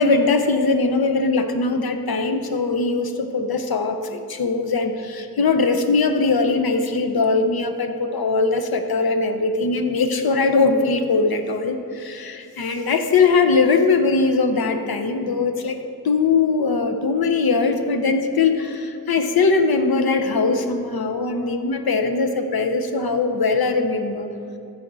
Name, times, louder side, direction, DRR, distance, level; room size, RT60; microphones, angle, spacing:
voice 1, 0.0-15.8 16.0-24.3, left 4 dB, 90° left, 7 dB, 0.8 m, -21 dB
14.5 x 5.2 x 4.0 m, 2.8 s
wide cardioid pair, 65°, 35 cm